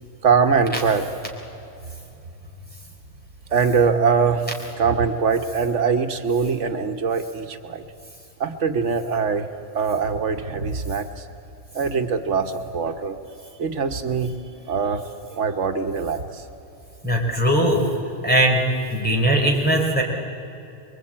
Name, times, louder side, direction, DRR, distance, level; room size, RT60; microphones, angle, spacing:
voice 1, 0.2-1.1 3.5-4.5 4.8-7.8 8.4-9.5 9.7-11.2 11.7-14.3 14.7-16.4, right 5 dB, 85° right, 7 dB, 1.5 m, -22 dB
voice 2, 17.0-17.8 18.2-18.6 18.9-20.0, right 1 dB, 10° left, -1 dB, 3.7 m, -19 dB
24.5 x 22.5 x 8.7 m, 2.8 s
omnidirectional pair, 1.2 m